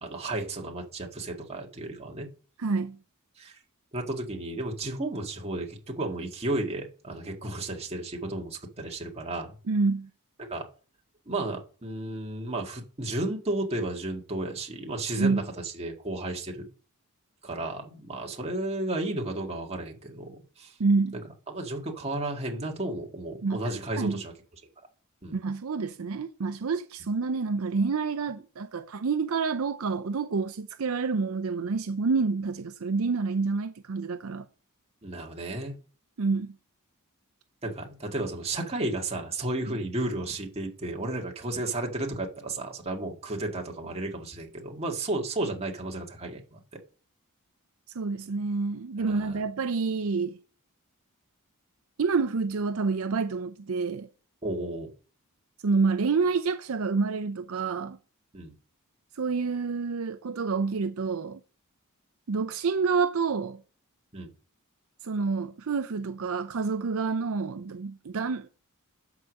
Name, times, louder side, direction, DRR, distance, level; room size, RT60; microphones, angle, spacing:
voice 1, 0.0-2.3 3.4-3.5 3.9-9.5 10.4-10.6 11.3-16.7 17.4-20.7 21.1-21.2 21.5-24.3 25.2-25.4 35.0-35.7 37.6-46.6 49.0-49.4 54.4-54.9 58.3-58.5 64.1-64.3, right 2 dB, 30° right, 1.8 m, -33 dB
voice 2, 2.6-3.0 9.7-10.1 15.2-15.4 20.8-21.2 23.4-23.6 24.0-24.2 25.3-34.5 36.2-36.6 47.9-50.4 52.0-54.1 55.6-58.0 59.2-61.4 62.3-63.6 65.0-68.5, right 4 dB, 70° right, 0.5 m, -28 dB
11.5 x 4.8 x 6.4 m
head